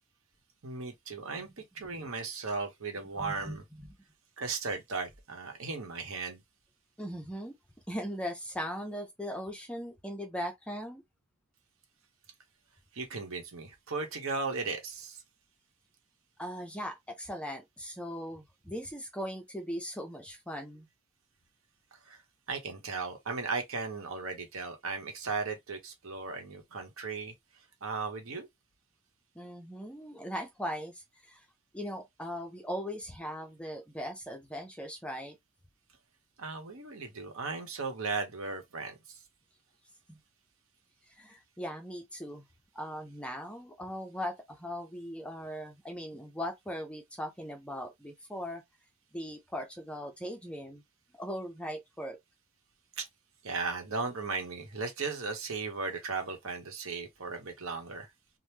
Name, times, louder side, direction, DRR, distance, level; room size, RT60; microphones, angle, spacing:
voice 1, 0.6-3.6 4.4-6.4 12.9-15.2 22.0-22.2 22.5-27.3 27.8-28.5 36.4-39.2 53.0-53.1 53.4-58.1, right 4 dB, 70° right, 1.0 m, -36 dB
voice 2, 3.2-3.8 7.0-7.6 7.9-11.0 16.4-20.9 29.4-31.4 31.7-35.4 40.1-40.2 41.1-42.5 42.7-48.6 49.1-50.8 51.2-52.2, equal, 5° left, 0.4 m, -39 dB
2.9 x 2.1 x 3.3 m
head